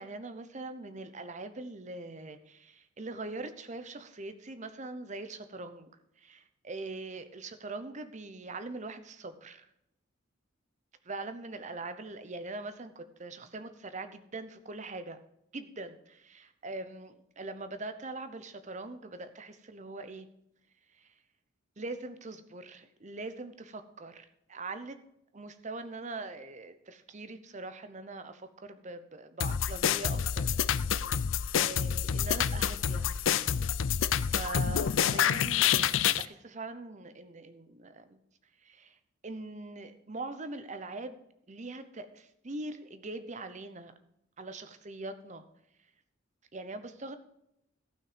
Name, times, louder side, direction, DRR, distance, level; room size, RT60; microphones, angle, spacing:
voice 1, 0.0-5.9 6.2-9.7 11.0-15.2 15.5-20.3 21.0-21.1 21.8-25.0 25.3-30.6 31.5-33.1 34.3-38.2 38.6-39.0 39.2-41.2 41.5-43.9 44.4-45.4 46.5-47.2, right 2 dB, 35° right, 10 dB, 0.9 m, -42 dB
sound 1, 29.4-36.2, left 8 dB, 75° left, 0.5 m, -28 dB
14.5 x 6.1 x 5.1 m, 0.78 s
head